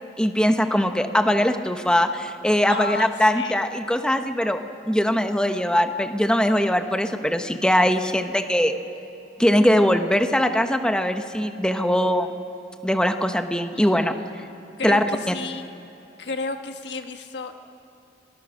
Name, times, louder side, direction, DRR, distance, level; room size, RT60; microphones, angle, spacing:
voice 1, 0.2-4.6 4.8-8.8 9.4-12.3 12.8-14.1 14.8-15.3, equal, 5° left, 7 dB, 0.9 m, -21 dB
voice 2, 2.7-3.7 13.7-14.0 14.8-15.7 16.2-17.5, left 3 dB, 75° left, 6 dB, 1.5 m, -32 dB
27.0 x 20.0 x 6.5 m, 2.8 s
head